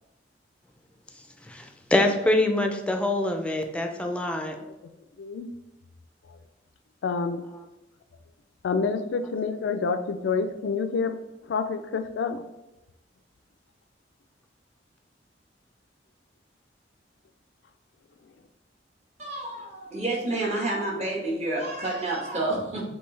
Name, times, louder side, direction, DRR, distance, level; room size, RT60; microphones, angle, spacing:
voice 1, 1.5-4.6, left 1 dB, 5° left, 4 dB, 0.4 m, -25 dB
voice 2, 5.2-5.5 7.0-7.4 8.6-11.2 11.5-12.4, left 5 dB, 75° left, 9 dB, 0.4 m, -28 dB
voice 3, 19.2-22.8, right 2 dB, 40° right, -3 dB, 1.3 m, -29 dB
5.3 x 2.8 x 3.2 m, 0.98 s
head